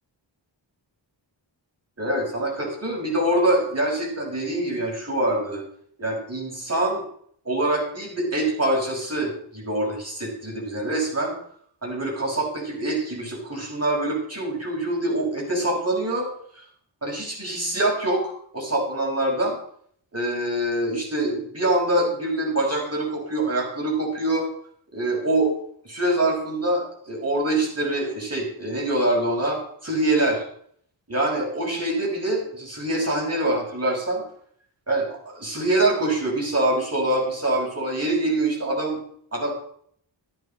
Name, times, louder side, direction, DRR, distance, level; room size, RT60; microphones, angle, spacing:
voice 1, 2.0-5.6 6.0-7.0 7.4-11.3 11.8-16.3 16.5-16.6 17.0-19.6 20.1-24.5 24.9-25.5 25.8-30.4 31.1-34.2 34.9-39.0 39.3-39.5, right 1 dB, 30° right, -1 dB, 5.7 m, -25 dB
13.5 x 10.5 x 4.4 m, 0.62 s
wide cardioid pair, 55°, 47 cm